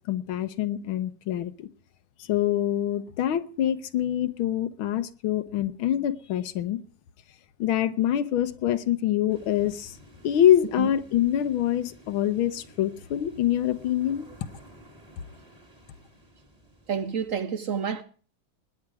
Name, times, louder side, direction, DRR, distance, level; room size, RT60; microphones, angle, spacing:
voice 1, 0.1-1.7 2.2-6.8 7.6-10.0 10.2-14.3, left 11 dB, 90° left, 1.7 m, -25 dB
sound 1, 9.3-17.4, equal, 20° right, 2.4 m, -53 dB
voice 2, 16.9-18.0, right 7 dB, 60° right, 0.8 m, -29 dB
20.5 x 8.7 x 4.8 m
omnidirectional pair, 2.2 m